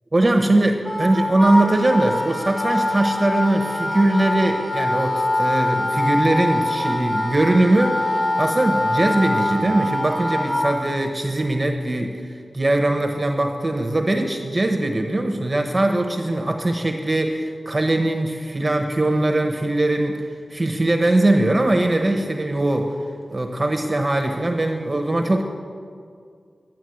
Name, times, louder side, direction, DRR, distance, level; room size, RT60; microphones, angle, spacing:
voice 1, 0.1-23.0 23.3-25.4, right 1 dB, 25° right, 4 dB, 1.0 m, -21 dB
Wind instrument woodwind instrument, 0.8-10.8, left 1 dB, 45° left, 3.5 m, -24 dB
10.0 x 10.0 x 7.9 m, 2.2 s
wide cardioid pair, 90°, 0 cm